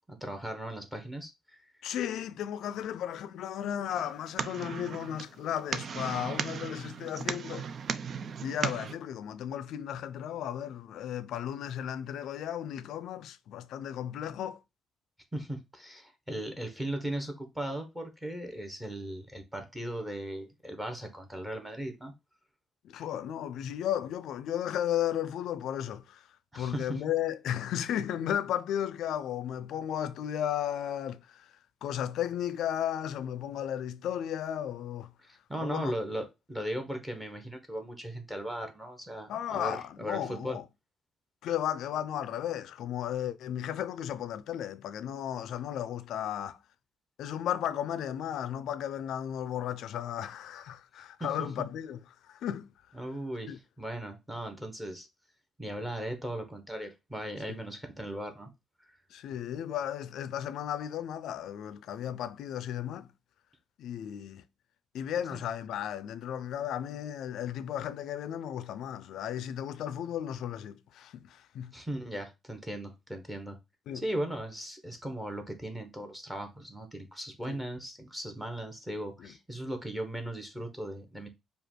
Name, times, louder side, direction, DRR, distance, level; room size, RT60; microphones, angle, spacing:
voice 1, 0.1-1.6 15.3-22.1 26.5-27.0 35.2-40.6 51.2-51.5 52.9-55.1 55.6-58.5 65.3-65.4 71.7-73.6 73.9-81.3, right 1 dB, 5° right, 1.1 m, -37 dB
voice 2, 1.8-7.7 8.4-14.6 22.8-26.3 26.6-31.5 31.8-35.1 35.6-35.9 39.3-40.6 41.4-46.6 47.2-52.0 52.3-52.7 53.5-53.6 57.5-57.6 59.1-63.1 63.8-64.4 64.9-71.7 73.9-74.0 77.5-77.6 79.2-79.3, left 10 dB, 80° left, 0.4 m, -34 dB
sound 1, 3.9-8.9, right 6 dB, 45° right, 0.4 m, -36 dB
5.1 x 2.4 x 4.4 m
cardioid pair, 130°, 0 cm